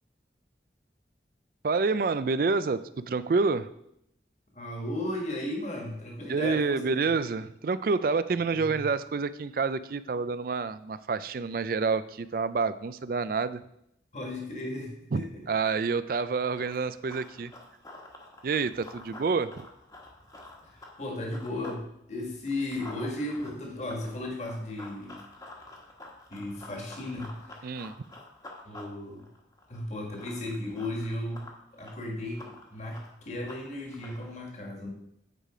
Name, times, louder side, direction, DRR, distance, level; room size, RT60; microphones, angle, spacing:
voice 1, 1.6-3.7 6.3-13.6 15.1-17.5 18.4-19.7 27.6-27.9, right 4 dB, 50° right, 14 dB, 0.4 m, -28 dB
voice 2, 4.5-6.8 8.5-8.8 14.1-15.4 20.6-25.2 26.3-27.8 28.6-29.2 29.7-31.5 31.7-34.9, left 1 dB, 40° left, 0 dB, 1.7 m, -35 dB
Run, 16.3-21.8 22.2-34.4, left 2 dB, 20° left, 1.3 m, -49 dB
9.1 x 5.0 x 5.0 m, 0.77 s
head